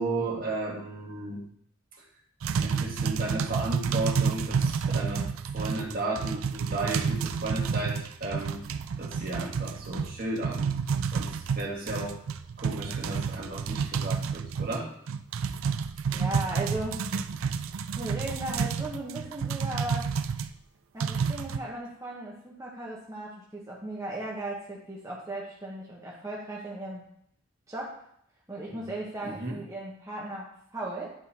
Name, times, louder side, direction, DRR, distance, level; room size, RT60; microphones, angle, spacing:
voice 1, 0.0-1.4 2.6-5.3 5.5-8.6 9.0-10.7 11.1-12.2 12.6-14.9 28.7-28.8 29.2-29.6, right 2 dB, 45° right, -3 dB, 1.9 m, -34 dB
sound 1, 2.4-20.5 21.0-21.6, right 6 dB, 75° right, 0.4 m, -30 dB
voice 2, 16.1-17.0 18.0-20.1 20.9-27.1 27.7-28.0 28.5-31.1, right 1 dB, 15° right, -4 dB, 1.1 m, -36 dB
10.0 x 3.9 x 4.2 m, 0.68 s
head